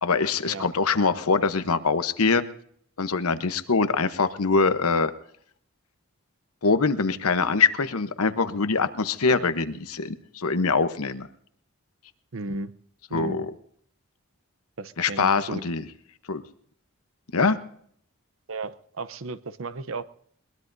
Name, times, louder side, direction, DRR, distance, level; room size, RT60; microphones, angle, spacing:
voice 1, 0.0-2.4 3.0-5.1 6.6-11.3 13.1-13.5 15.0-15.8 16.3-16.4 17.3-17.6, left 4 dB, 90° left, 11 dB, 1.0 m, -23 dB
voice 2, 12.3-12.7 13.1-13.5 14.8-15.7 18.5-20.0, right 3 dB, 65° right, 14 dB, 0.8 m, -35 dB
22.0 x 20.5 x 2.7 m, 0.63 s
head